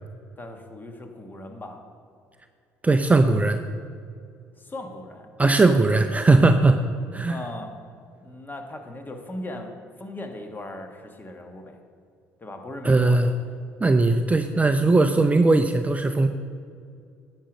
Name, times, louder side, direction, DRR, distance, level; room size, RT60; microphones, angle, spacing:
voice 1, 0.4-1.8 4.6-5.3 7.3-7.7 8.2-9.7 10.0-11.8 12.4-13.2, left 1 dB, 25° left, 4 dB, 1.4 m, -38 dB
voice 2, 2.8-3.6 5.4-6.8 7.1-7.4 12.8-13.3 13.8-16.3, right 3 dB, 20° right, 7 dB, 0.5 m, -19 dB
10.0 x 6.4 x 5.1 m, 2.3 s
hypercardioid pair, 60°, 8 cm